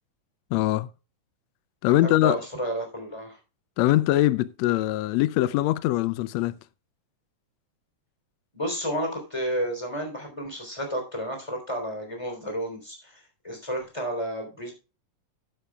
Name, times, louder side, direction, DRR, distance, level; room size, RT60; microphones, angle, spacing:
voice 1, 0.5-0.9 1.8-2.4 3.8-6.6, left 15 dB, 80° left, 1.6 m, -22 dB
voice 2, 1.8-3.4 8.5-14.7, equal, 10° left, 3.3 m, -31 dB
11.5 x 10.5 x 2.3 m
omnidirectional pair, 3.6 m